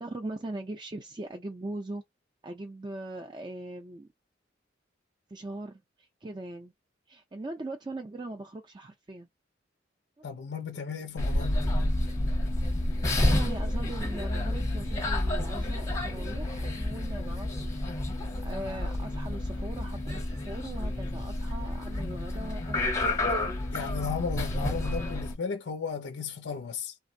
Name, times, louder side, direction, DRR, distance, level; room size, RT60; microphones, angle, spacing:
voice 1, 0.0-2.0 2.4-4.1 5.3-6.7 7.1-9.3 10.2-10.5 13.1-17.7 18.4-22.9, right 2 dB, 25° right, 0.4 m, -40 dB
voice 2, 10.2-11.7 23.7-27.0, left 5 dB, 75° left, 0.4 m, -35 dB
sound 1, 11.2-25.4, left 1 dB, 15° left, 0.7 m, -30 dB
3.3 x 2.0 x 2.5 m
head